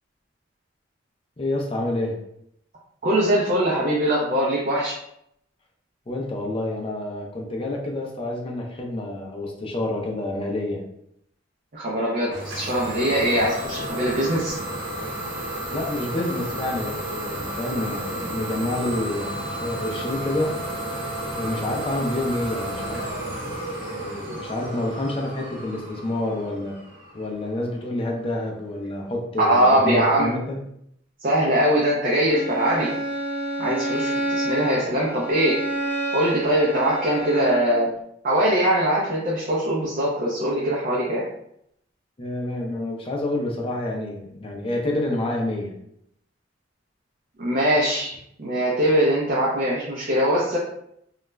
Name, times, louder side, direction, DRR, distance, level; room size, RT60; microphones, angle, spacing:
voice 1, 1.4-2.1 6.1-10.8 15.7-20.5 21.3-23.0 23.4-26.8 27.1-30.6 34.6-34.8 42.2-45.7, left 1 dB, 30° left, 0 dB, 0.5 m, -28 dB
voice 2, 3.0-5.0 11.7-14.5 29.4-30.3 31.2-32.9 33.6-35.6 36.1-37.9 38.2-41.3 47.4-48.1 48.4-50.6, right 1 dB, 45° right, -5 dB, 0.5 m, -22 dB
Idling / Domestic sounds home sounds, 12.3-27.8, right 1 dB, 65° right, 0.9 m, -32 dB
Bowed string instrument, 32.3-37.7, right 1 dB, 10° right, 0.7 m, -28 dB
2.3 x 2.1 x 3.1 m, 0.74 s
head